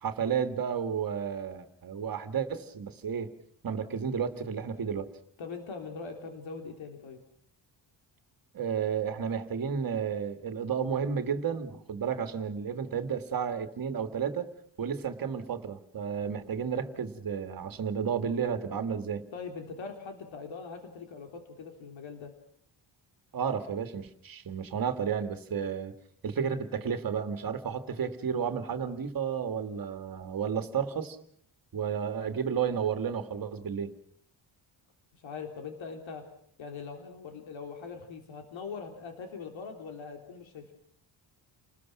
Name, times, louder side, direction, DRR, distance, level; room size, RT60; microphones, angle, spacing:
voice 1, 0.0-3.3 3.6-5.1 8.5-14.5 14.8-19.2 23.3-25.9 26.2-31.2 31.7-33.9, right 7 dB, 50° right, 8 dB, 2.1 m, -32 dB
voice 2, 5.4-7.2 19.3-22.3 35.2-36.2 36.6-40.7, left 5 dB, 85° left, 5 dB, 3.5 m, -42 dB
29.5 x 20.5 x 6.1 m, 0.62 s
wide cardioid pair, 140°, 46 cm